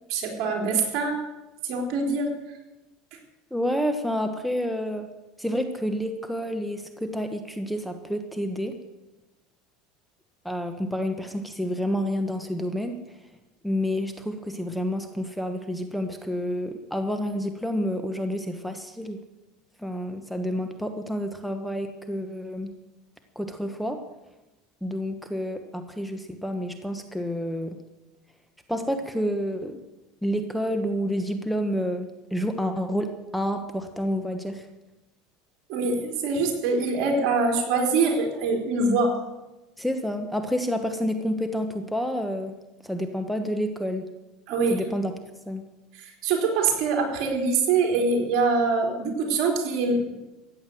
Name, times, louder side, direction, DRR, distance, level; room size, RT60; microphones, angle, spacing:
voice 1, 0.1-1.2 1.6-2.4 35.7-39.2 44.5-44.8 46.0-50.2, right 4 dB, 60° right, 2 dB, 3.8 m, -24 dB
voice 2, 3.5-5.1 5.4-8.8 10.4-13.0 13.6-19.2 19.8-22.7 23.3-24.0 24.8-27.8 28.7-29.8 30.2-34.6 39.8-42.6 42.8-44.1 44.7-45.1 45.5-45.6, equal, ahead, 6 dB, 1.1 m, -29 dB
14.5 x 9.5 x 7.7 m, 1.0 s
supercardioid pair, 125°, 0 cm